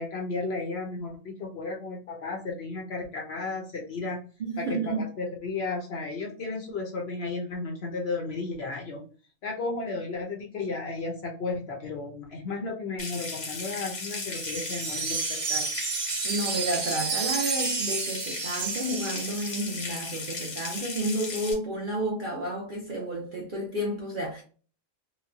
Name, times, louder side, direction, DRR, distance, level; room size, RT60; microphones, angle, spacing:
voice 1, 0.0-4.2 4.6-9.0 9.4-15.8, left 3 dB, 60° left, 0.7 m, -34 dB
voice 2, 4.4-5.0 16.2-24.4, right 1 dB, 55° right, 0.6 m, -31 dB
Water tap faucet / Sink (filling or washing) / Trickle dribble, 13.0-21.5, left 3 dB, 90° left, 1.4 m, -36 dB
Wind chime, 14.3-19.7, right 6 dB, 90° right, 1.1 m, -31 dB
3.0 x 2.0 x 2.4 m
omnidirectional pair, 1.4 m